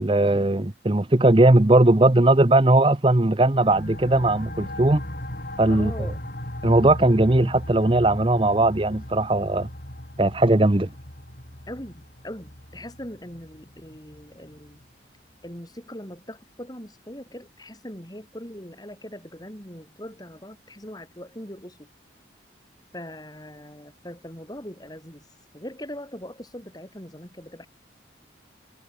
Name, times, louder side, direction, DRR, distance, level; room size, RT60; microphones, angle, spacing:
voice 1, 0.0-5.0 5.6-6.1 6.6-9.7 10.2-10.9, right 2 dB, 30° right, 0.9 m, -19 dB
sound 1, 3.5-14.8, left 1 dB, 50° left, 4.3 m, -38 dB
voice 2, 5.7-6.2 11.7-14.8 15.4-21.9 22.9-25.2 25.5-27.7, equal, 20° left, 6.2 m, -40 dB
head